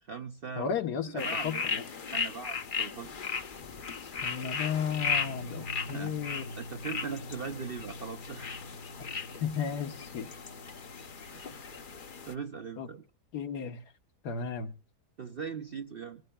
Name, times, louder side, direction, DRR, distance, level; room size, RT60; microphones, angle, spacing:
voice 1, 0.0-0.7 1.1-1.7 2.1-3.1 5.6-6.2 6.6-8.6 9.2-9.4 11.3-11.7 12.2-13.0 15.2-16.2, right 6 dB, 50° right, 7 dB, 0.7 m, -40 dB
voice 2, 0.6-1.8 4.2-6.5 9.0-10.3 12.8-12.9 13.3-13.8 14.2-14.7, left 7 dB, 75° left, 7 dB, 1.7 m, -34 dB
sound 1, 1.2-12.3, left 5 dB, 40° left, 0.8 m, -36 dB
sound 2, 5.0-12.2, left 1 dB, 75° right, 2.7 m, -46 dB
25.0 x 14.5 x 2.2 m, 0.35 s
omnidirectional pair, 1.7 m